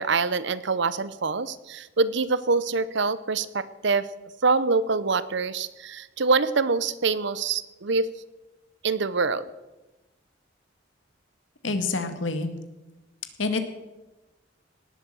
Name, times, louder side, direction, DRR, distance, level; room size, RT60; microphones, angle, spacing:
voice 1, 0.0-4.1 4.4-8.1 8.8-9.4, right 4 dB, 70° right, 16 dB, 0.8 m, -25 dB
voice 2, 11.6-12.5 13.4-13.6, left 3 dB, 85° left, 8 dB, 1.9 m, -27 dB
18.5 x 8.5 x 7.6 m, 1.1 s
head